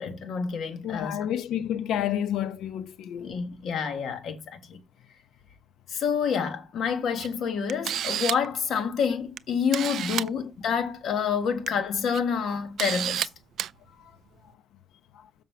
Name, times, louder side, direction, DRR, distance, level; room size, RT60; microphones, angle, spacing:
voice 1, 0.0-1.2 3.2-4.8 5.9-13.3, left 6 dB, 65° left, 1.7 m, -28 dB
voice 2, 0.8-3.3 14.0-14.1 15.1-15.2, left 10 dB, 80° left, 0.8 m, -30 dB
Camera, 7.2-7.3 7.7-8.5 9.4-9.5 9.7-10.3 11.4-11.7 12.1-12.2 12.8-13.3 13.6-13.7, right 10 dB, 65° right, 0.4 m, -29 dB
7.3 x 5.4 x 5.9 m
cardioid pair, 110°, 0 cm